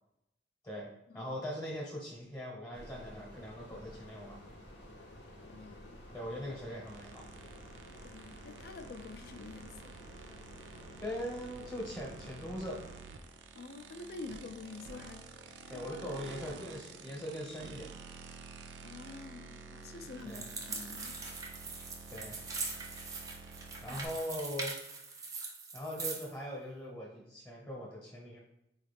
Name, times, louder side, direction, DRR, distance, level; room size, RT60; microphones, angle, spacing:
voice 1, 0.6-4.4 6.1-7.2 11.0-12.8 15.7-17.9 20.2-20.5 22.1-22.4 23.8-24.8 25.7-28.4, equal, 15° left, -4 dB, 0.8 m, -41 dB
sound 1, 2.7-13.0, left 1 dB, 85° left, 0.7 m, -52 dB
voice 2, 5.5-6.0 8.0-9.9 13.5-15.3 15.7-15.8 18.8-21.1 23.9-24.0, left 3 dB, 60° left, 6 dB, 0.4 m, -47 dB
sound 2, 6.9-24.1, right 4 dB, 80° right, 0.4 m, -50 dB
sound 3, 20.3-26.3, right 3 dB, 20° right, 0.5 m, -41 dB
4.0 x 2.4 x 3.3 m, 0.84 s
head